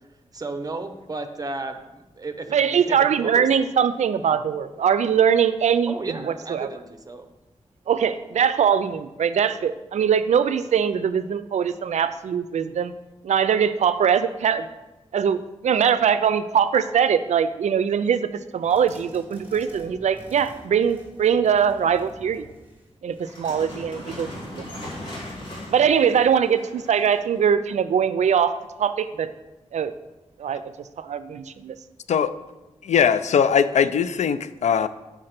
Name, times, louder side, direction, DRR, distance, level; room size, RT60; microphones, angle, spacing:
voice 1, 0.3-3.5 5.9-7.3, right 3 dB, 30° right, 7 dB, 0.7 m, -33 dB
voice 2, 2.5-5.9 6.3-6.7 7.9-12.9 13.2-14.7 15.1-22.5 23.0-24.6 25.7-29.3 29.7-29.9 30.4-30.7 31.0-31.8, right 7 dB, 85° right, 13 dB, 0.4 m, -22 dB
sound 1, 18.6-23.7, equal, 15° right, 2.1 m, -48 dB
sound 2, 23.2-27.4, left 1 dB, 40° left, 2.6 m, -38 dB
voice 3, 32.8-34.9, left 7 dB, 85° left, 13 dB, 0.4 m, -20 dB
6.4 x 4.8 x 5.8 m, 1.1 s
wide cardioid pair, 90°, 12 cm